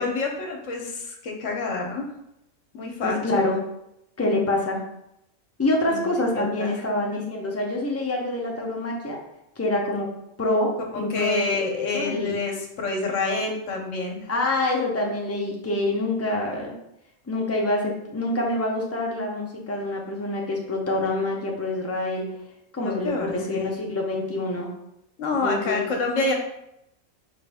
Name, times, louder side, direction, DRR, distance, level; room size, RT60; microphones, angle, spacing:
voice 1, 0.0-2.0 2.7-3.5 5.9-6.7 11.1-14.2 22.8-23.7 25.2-26.3, left 3 dB, 75° left, 2 dB, 1.2 m, -28 dB
voice 2, 3.0-3.6 4.2-4.8 5.6-9.2 9.6-10.1 10.4-11.6 11.9-12.4 14.3-16.7 17.3-22.3 22.7-24.7 25.3-25.9, left 2 dB, 15° left, -1 dB, 0.6 m, -26 dB
4.8 x 3.1 x 3.5 m, 0.82 s
omnidirectional pair, 1.3 m